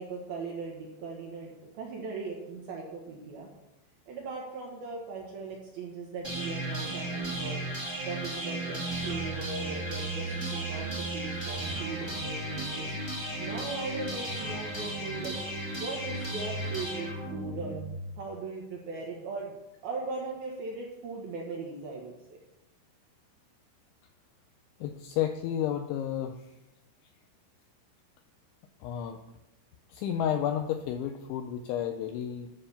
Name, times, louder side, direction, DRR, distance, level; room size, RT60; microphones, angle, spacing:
voice 1, 0.0-3.5 4.1-7.7 8.1-12.9 13.4-15.4 15.8-17.8 18.2-22.4, right 3 dB, 70° right, -1 dB, 2.4 m, -39 dB
sound 1, 6.2-18.2, right 2 dB, 15° right, 0.9 m, -35 dB
voice 2, 24.8-26.3 28.8-29.2 29.9-32.5, left 10 dB, 85° left, 6 dB, 2.7 m, -31 dB
11.5 x 5.6 x 6.9 m, 0.93 s
omnidirectional pair, 6.0 m